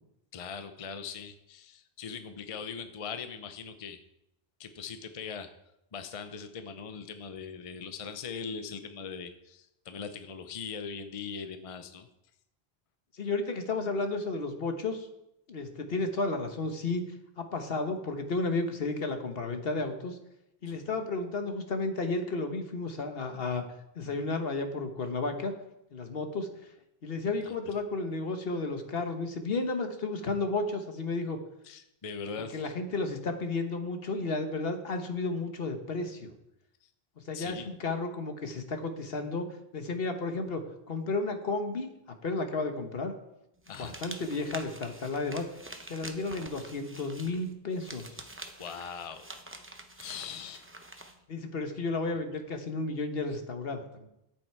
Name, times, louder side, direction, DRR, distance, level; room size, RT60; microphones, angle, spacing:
voice 1, 0.3-4.0 4.6-5.5 5.9-12.1 20.7-20.8 27.4-27.6 31.6-32.7 36.8-36.9 37.3-37.7 43.7-43.9 48.6-49.3 50.0-50.7, left 6 dB, 40° left, 8 dB, 0.7 m, -40 dB
voice 2, 13.1-15.1 15.5-17.0 17.4-20.2 20.6-23.6 24.0-25.5 25.9-26.5 27.0-31.4 32.5-36.3 37.3-39.5 39.7-40.6 40.9-41.9 42.2-43.1 43.7-45.4 45.9-48.2 51.3-54.1, left 3 dB, 65° left, 6 dB, 1.3 m, -32 dB
sound 1, 43.6-51.2, right 1 dB, 15° right, 0.7 m, -46 dB
10.5 x 8.0 x 4.6 m, 0.85 s
omnidirectional pair, 1.1 m